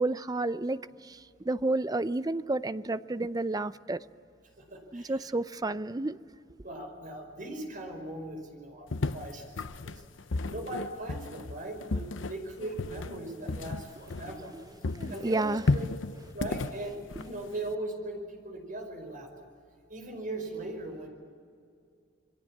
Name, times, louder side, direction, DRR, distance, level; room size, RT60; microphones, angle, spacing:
voice 1, 0.0-4.0 4.9-6.2 14.3-14.6 14.9-15.6, right 2 dB, 20° right, 0.5 m, -31 dB
voice 2, 4.7-5.3 6.6-9.6 9.8-10.0 10.5-14.5 15.1-19.3 19.9-21.1, right 1 dB, 45° right, 5.2 m, -39 dB
sound 1, 8.9-14.6 14.8-17.7, left 3 dB, 80° left, 0.8 m, -34 dB
27.0 x 23.0 x 7.3 m
head